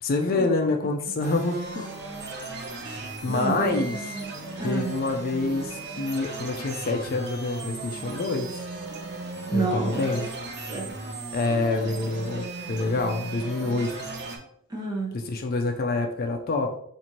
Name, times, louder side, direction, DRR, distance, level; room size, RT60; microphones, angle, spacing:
voice 1, 0.0-1.9 3.2-4.0 4.6-8.6 9.5-10.3 11.3-14.1 15.1-16.8, left 3 dB, 45° left, 4 dB, 0.4 m, -27 dB
sound 1, 1.2-14.4, right 3 dB, 55° right, 0.7 m, -36 dB
voice 2, 3.3-4.9 9.5-10.2 10.7-10.9 14.7-15.2, right 3 dB, 20° right, -1 dB, 0.9 m, -30 dB
4.2 x 2.5 x 3.0 m, 0.70 s
head